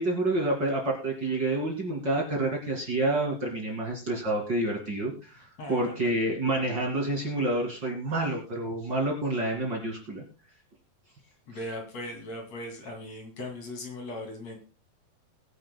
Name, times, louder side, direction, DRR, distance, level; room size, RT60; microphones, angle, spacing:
voice 1, 0.0-5.4 5.7-10.2, right 2 dB, 35° right, -1 dB, 2.4 m, -28 dB
voice 2, 5.4-6.0 11.5-14.6, left 1 dB, 50° left, 3 dB, 3.4 m, -39 dB
22.0 x 10.5 x 2.2 m, 0.32 s
omnidirectional pair, 4.0 m